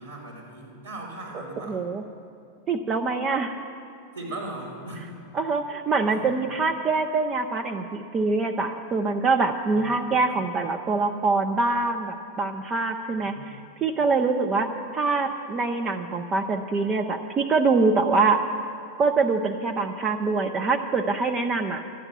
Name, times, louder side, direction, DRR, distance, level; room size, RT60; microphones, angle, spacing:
voice 1, 0.0-1.8 4.1-5.1 6.1-6.3 9.6-10.4 13.2-13.5, right 2 dB, 80° right, -5 dB, 4.1 m, -39 dB
voice 2, 1.7-2.0 2.7-3.6 5.3-18.4 19.0-21.8, right 3 dB, 25° right, 5 dB, 0.6 m, -24 dB
13.0 x 8.9 x 7.6 m, 2.5 s
figure-of-eight pair, 90°, 0 cm